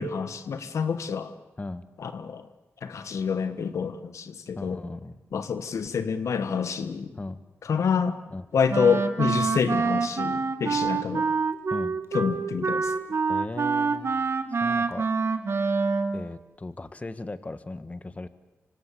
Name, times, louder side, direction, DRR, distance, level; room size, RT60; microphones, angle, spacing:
voice 1, 0.0-1.3 2.0-2.5 2.8-4.8 5.3-7.1 7.6-8.2 8.5-11.3 12.1-12.9, left 6 dB, 90° left, 11 dB, 1.4 m, -27 dB
voice 2, 4.6-5.2 7.2-7.4 8.3-8.5 11.7-11.9 13.3-14.1 14.5-15.1 16.1-18.3, left 2 dB, 30° left, 12 dB, 1.4 m, -37 dB
Wind instrument woodwind instrument, 8.7-16.2, right 4 dB, 60° right, 1.8 m, -26 dB
26.5 x 24.5 x 8.4 m, 1.1 s
wide cardioid pair, 90°, 5 cm